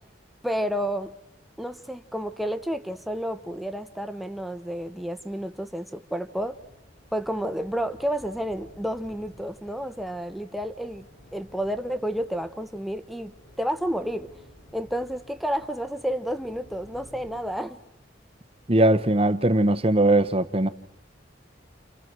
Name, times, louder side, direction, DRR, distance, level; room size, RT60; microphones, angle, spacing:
voice 1, 0.4-1.1 1.6-6.6 7.1-11.1 11.3-13.3 13.6-14.3 14.7-17.8, equal, ahead, 1.1 m, -30 dB
sound 1, 6.3-17.4, equal, 75° left, 6.4 m, -53 dB
voice 2, 18.7-20.7, right 1 dB, 30° right, 1.0 m, -20 dB
29.5 x 29.0 x 6.2 m
head